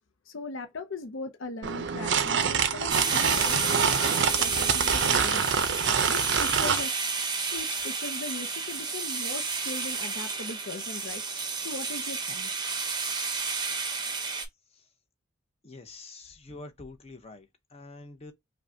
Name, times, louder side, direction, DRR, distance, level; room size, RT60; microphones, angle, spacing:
voice 1, 0.3-7.0 7.5-11.2 11.6-12.5, left 3 dB, 70° left, 0.6 m, -39 dB
sound 1, 1.6-6.9, right 6 dB, 55° right, 0.5 m, -26 dB
sound 2, 2.9-14.5, right 4 dB, 20° right, 0.7 m, -31 dB
voice 2, 15.6-18.3, left 2 dB, 30° left, 0.8 m, -46 dB
5.2 x 2.2 x 2.6 m
head